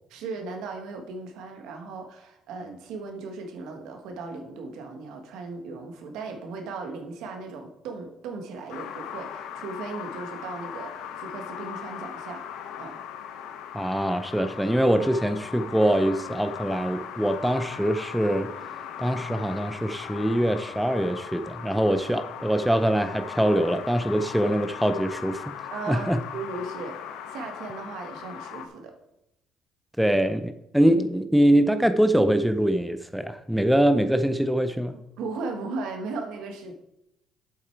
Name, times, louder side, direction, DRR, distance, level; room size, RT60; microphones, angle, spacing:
voice 1, 0.1-12.4 12.8-13.0 25.7-26.9 27.3-28.9 35.2-36.7, right 3 dB, 80° right, 4 dB, 1.4 m, -37 dB
sound 1, 8.7-28.7, left 8 dB, 85° left, 0.8 m, -39 dB
voice 2, 13.7-18.5 19.0-25.5 25.9-26.2 30.0-35.0, right 1 dB, ahead, 9 dB, 0.6 m, -23 dB
7.8 x 7.6 x 4.6 m, 0.83 s
cardioid pair, 110°, 0 cm